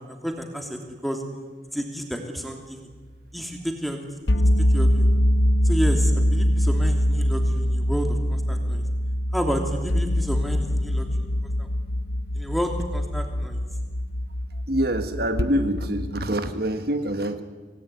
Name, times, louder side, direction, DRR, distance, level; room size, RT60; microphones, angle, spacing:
voice 1, 0.2-1.2 1.7-2.8 3.3-4.0 4.7-5.1 5.6-8.8 9.3-11.3 11.6-11.7 12.3-13.6, equal, ahead, 3 dB, 2.9 m, -30 dB
sound 1, 4.3-16.3, equal, 65° left, 0.9 m, -23 dB
voice 2, 14.5-17.4, right 1 dB, 55° right, 8 dB, 1.6 m, -26 dB
26.0 x 18.5 x 9.6 m, 1.4 s
head